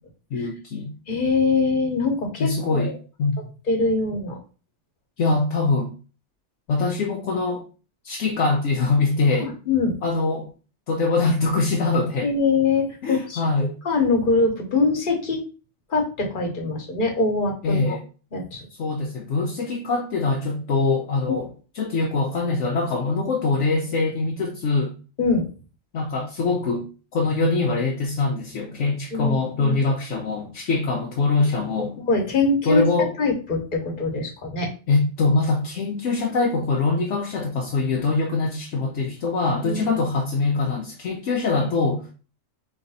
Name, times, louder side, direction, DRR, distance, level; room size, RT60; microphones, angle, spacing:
voice 1, 0.3-0.9 2.4-2.9 3.2-3.3 5.2-5.9 6.7-7.6 8.0-9.5 10.0-10.5 10.9-12.3 13.0-13.7 17.6-18.0 18.8-21.5 21.8-24.9 25.9-26.9 27.1-32.0 32.7-33.1 34.9-42.0, left 3 dB, 70° left, 1 dB, 1.0 m, -23 dB
voice 2, 1.1-3.0 3.7-4.4 9.4-10.0 12.2-13.4 13.8-15.4 15.9-18.0 18.3-18.6 21.3-21.5 25.2-25.5 29.1-29.8 32.1-32.8 33.2-34.7 39.6-40.0, left 3 dB, 40° left, 1 dB, 1.3 m, -23 dB
3.9 x 3.3 x 4.1 m, 0.35 s
omnidirectional pair, 1.4 m